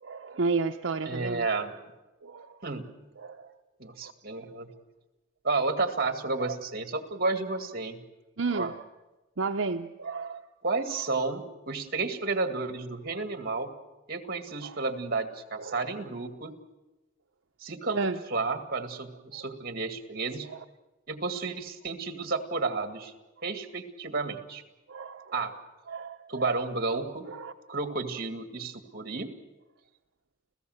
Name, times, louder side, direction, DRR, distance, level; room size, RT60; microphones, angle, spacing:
voice 1, 0.0-1.4 2.2-2.6 3.2-3.5 6.4-6.5 8.4-8.7 9.4-10.4 14.6-14.8 15.6-15.8 18.0-18.2 19.3-19.4 20.5-20.6 24.9-25.5 25.9-26.5 27.3-27.5, right 4 dB, 75° right, 5 dB, 0.8 m, -32 dB
voice 2, 1.1-1.7 2.6-2.8 3.8-4.7 5.4-8.0 8.5-8.7 10.6-13.7 14.1-16.5 17.6-20.5 21.1-23.1 23.4-24.6 25.3-25.6 26.3-27.3 27.7-29.3, right 3 dB, 50° right, 7 dB, 2.1 m, -31 dB
30.0 x 16.0 x 8.0 m, 1.1 s
head